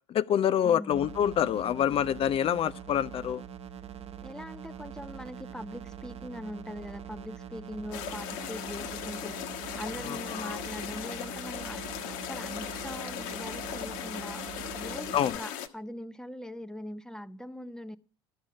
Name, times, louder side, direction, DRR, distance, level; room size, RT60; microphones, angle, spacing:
voice 1, 0.1-3.4 10.1-10.6 15.1-15.4, left 9 dB, 40° left, 0.5 m, -27 dB
voice 2, 0.6-1.1 4.2-9.5 9.8-11.8 12.2-14.4 14.7-18.0, left 1 dB, 5° left, 0.7 m, -41 dB
sound 1, 0.9-15.4, right 8 dB, 45° right, 0.9 m, -44 dB
sound 2, 7.9-15.7, left 10 dB, 65° left, 1.2 m, -38 dB
12.5 x 6.3 x 7.4 m
hypercardioid pair, 70°, 15 cm